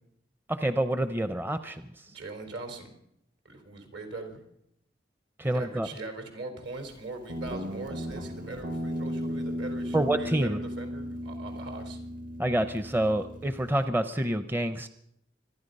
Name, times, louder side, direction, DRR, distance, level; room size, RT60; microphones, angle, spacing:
voice 1, 0.5-1.8 5.4-5.9 9.9-10.6 12.4-14.9, right 1 dB, 10° right, 10 dB, 0.5 m, -27 dB
voice 2, 2.1-2.9 3.4-4.4 5.4-12.0, right 2 dB, 75° right, 4 dB, 3.7 m, -41 dB
Guitar, 7.3-13.9, equal, 45° right, 0.9 m, -36 dB
25.5 x 10.5 x 5.3 m, 0.76 s
head